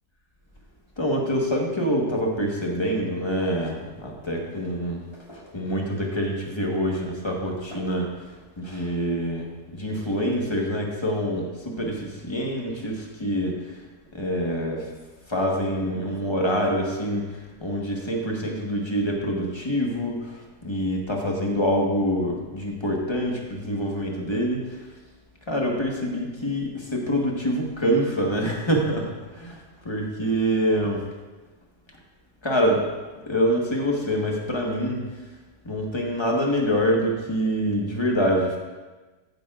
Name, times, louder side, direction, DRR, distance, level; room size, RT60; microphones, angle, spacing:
voice 1, 1.0-8.1 8.6-13.6 14.1-14.9 15.3-24.7 25.5-29.6 29.8-31.0 32.4-32.8 33.3-35.0 35.6-38.6, equal, 20° left, -1 dB, 1.3 m, -26 dB
14.5 x 9.4 x 2.5 m, 1.2 s
omnidirectional pair, 1.7 m